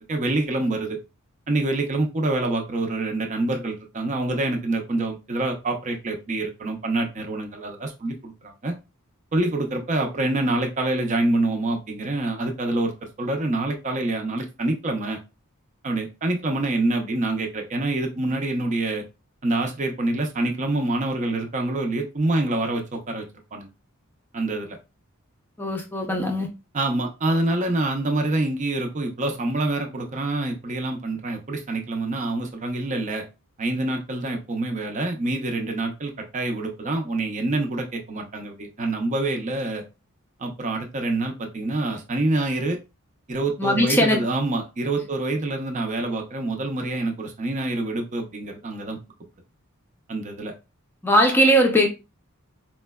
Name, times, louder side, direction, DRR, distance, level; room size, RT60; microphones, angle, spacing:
voice 1, 0.1-1.0 1.5-8.7 9.3-12.9 13.2-15.2 15.8-19.0 19.4-23.7 24.3-24.8 26.7-33.2 33.6-39.8 40.4-42.8 43.3-49.0 50.1-50.5, right 2 dB, 35° right, 0.6 m, -26 dB
voice 2, 25.6-26.5 43.6-44.2 51.0-51.9, equal, 10° left, 0.5 m, -19 dB
4.3 x 2.1 x 2.2 m
head